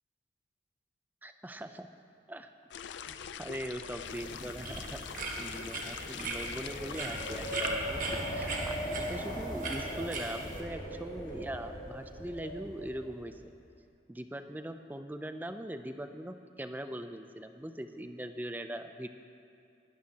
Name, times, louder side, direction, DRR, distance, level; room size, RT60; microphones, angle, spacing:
voice 1, 1.2-1.9 2.3-2.5 3.1-13.4 14.1-19.1, right 1 dB, 10° right, 8 dB, 0.4 m, -41 dB
sound 1, 2.7-7.7, left 8 dB, 75° left, 0.4 m, -43 dB
Wind, 3.2-13.3, equal, 45° left, 2.6 m, -40 dB
sound 2, 4.0-10.6, right 3 dB, 45° right, 1.4 m, -39 dB
20.0 x 12.5 x 2.9 m, 2.5 s
head